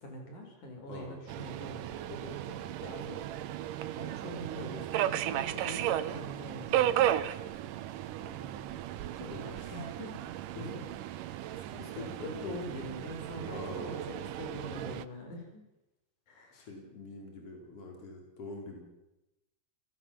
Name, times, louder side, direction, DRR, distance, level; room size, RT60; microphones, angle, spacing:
voice 1, 0.0-3.3 3.5-7.1 8.2-10.2 10.6-10.8 11.3-15.6 16.3-16.7, left 1 dB, 65° left, 3 dB, 6.4 m, -44 dB
voice 2, 0.9-1.2 9.1-9.8 10.6-10.8 11.6-12.6 13.5-14.1 16.5-18.8, left 2 dB, 45° left, 2 dB, 5.2 m, -45 dB
Subway metro underground, 1.3-15.1, right 12 dB, 85° right, 2.5 m, -35 dB
29.0 x 17.5 x 7.5 m, 0.97 s
omnidirectional pair, 3.7 m